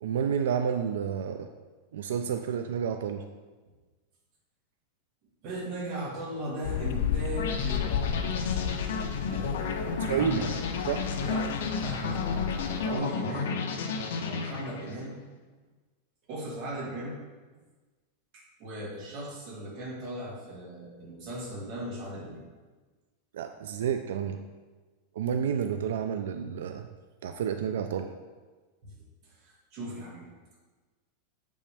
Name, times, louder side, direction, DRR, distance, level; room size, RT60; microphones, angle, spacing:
voice 1, 0.0-1.5 1.9-3.3 10.0-10.4 10.9-11.1 23.3-24.4 25.2-26.9 27.2-28.1, right 8 dB, 85° right, 7 dB, 0.4 m, -30 dB
voice 2, 5.4-7.8 9.3-10.6 11.2-13.6 14.3-15.2 16.3-17.2 18.3-22.4 28.8-28.9 29.2-30.6, right 1 dB, 35° right, -4 dB, 1.9 m, -38 dB
sound 1, 6.6-12.9, left 9 dB, 60° left, 0.3 m, -33 dB
sound 2, 7.4-15.0, left 4 dB, 85° left, 0.8 m, -32 dB
7.5 x 5.3 x 3.4 m, 1.3 s
supercardioid pair, 180°, 0 cm